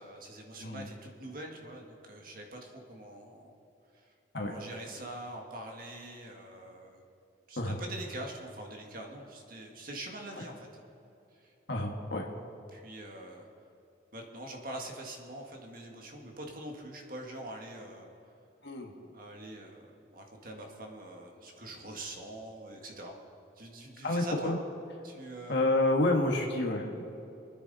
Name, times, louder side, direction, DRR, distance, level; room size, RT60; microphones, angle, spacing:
voice 1, 0.0-3.5 3.9-4.1 4.4-7.0 7.5-10.8 11.3-11.5 11.8-11.9 12.7-13.5 14.1-18.1 19.0-19.8 20.1-23.2 23.6-24.5 25.0-25.7, right 1 dB, 45° right, 1 dB, 1.8 m, -44 dB
voice 2, 11.7-12.3 18.6-18.9 24.0-24.6 25.5-27.0, left 2 dB, 65° left, 1 dB, 1.6 m, -29 dB
24.5 x 9.6 x 4.1 m, 2.8 s
head